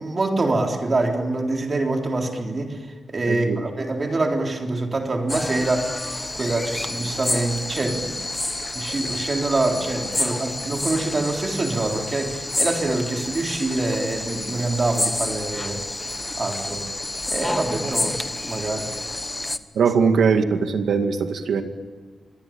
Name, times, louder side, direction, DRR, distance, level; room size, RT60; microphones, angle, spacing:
voice 1, 0.0-8.2 8.7-15.8 16.4-16.8 17.3-18.2 18.5-18.9, right 2 dB, 35° right, 2 dB, 3.8 m, -25 dB
voice 2, 3.3-3.6 19.8-21.6, right 5 dB, 90° right, 7 dB, 2.2 m, -20 dB
sound 1, 5.3-19.6, left 2 dB, 15° left, 1.2 m, -29 dB
26.5 x 23.0 x 8.9 m, 1.5 s
wide cardioid pair, 140°, 0 cm